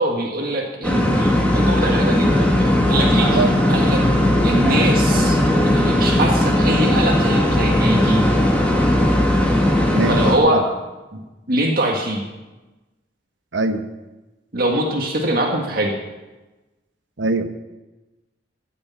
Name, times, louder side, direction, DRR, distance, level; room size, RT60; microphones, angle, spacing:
voice 1, 0.0-4.0 4.4-8.3 10.1-10.6 11.1-11.2 11.5-12.2 14.5-16.0, right 1 dB, 50° right, 0 dB, 1.8 m, -23 dB
sound 1, 0.8-10.4, left 1 dB, 5° left, 2.0 m, -17 dB
voice 2, 13.5-13.8 17.2-17.5, right 3 dB, 80° right, 8 dB, 1.1 m, -21 dB
15.0 x 6.8 x 8.4 m, 1.1 s
head